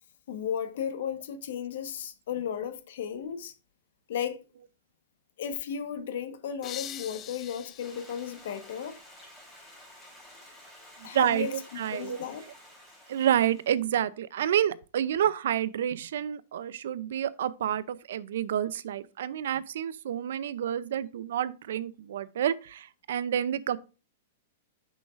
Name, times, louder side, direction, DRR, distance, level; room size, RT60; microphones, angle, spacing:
voice 1, 0.3-3.5 4.1-4.4 5.4-9.0 11.0-11.5 11.9-12.4, left 8 dB, 65° left, 1.2 m, -34 dB
sound 1, 6.6-9.4, left 10 dB, 25° left, 0.5 m, -44 dB
Stream, 7.8-13.9, left 1 dB, 5° left, 3.6 m, -52 dB
voice 2, 11.0-12.2 13.1-23.8, right 10 dB, 70° right, 0.5 m, -29 dB
8.3 x 6.2 x 2.5 m
hypercardioid pair, 150°, 0 cm